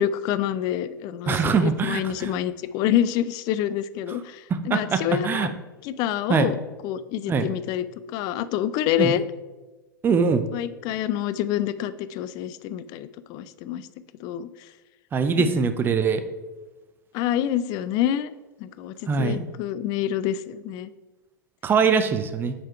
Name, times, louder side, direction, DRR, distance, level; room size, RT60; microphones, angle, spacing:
voice 1, 0.0-5.5 5.8-6.6 6.8-7.8 8.1-9.2 10.5-13.9 14.2-14.5 15.4-15.6 17.1-18.3 18.6-20.9, left 11 dB, 40° left, 14 dB, 0.3 m, -27 dB
voice 2, 1.3-2.3 4.5-5.5 6.3-6.5 7.3-7.5 9.0-9.1 10.0-10.4 15.1-16.2 19.1-19.4 21.6-22.5, right 5 dB, 20° right, 9 dB, 0.5 m, -22 dB
6.3 x 4.2 x 4.5 m, 1.2 s
figure-of-eight pair, 90°, 11 cm